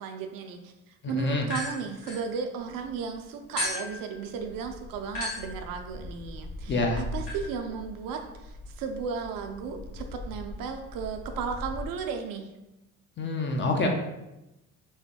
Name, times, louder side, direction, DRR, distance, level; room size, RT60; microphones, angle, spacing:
voice 1, 0.0-12.5, right 6 dB, 55° right, 5 dB, 0.5 m, -35 dB
voice 2, 1.0-1.5 6.7-7.0 13.2-13.9, left 2 dB, 30° left, 2 dB, 0.5 m, -27 dB
sound 1, 1.5-2.9 3.6-11.9, left 1 dB, 75° left, 1.1 m, -38 dB
3.1 x 2.1 x 2.8 m, 0.94 s
hypercardioid pair, 65°, 40 cm